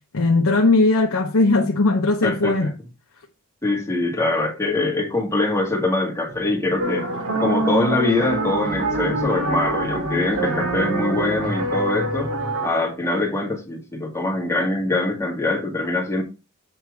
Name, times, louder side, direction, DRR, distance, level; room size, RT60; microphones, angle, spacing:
voice 1, 0.1-2.7, left 2 dB, 90° left, 1.0 m, -18 dB
voice 2, 2.2-2.7 3.6-7.1 7.4-12.3 12.6-16.2, left 2 dB, 15° left, 1.8 m, -23 dB
sound 1, 6.3-12.5, left 1 dB, 40° right, 1.7 m, -35 dB
sound 2, 6.8-12.7, right 2 dB, 80° right, 2.2 m, -25 dB
7.9 x 4.4 x 4.7 m
head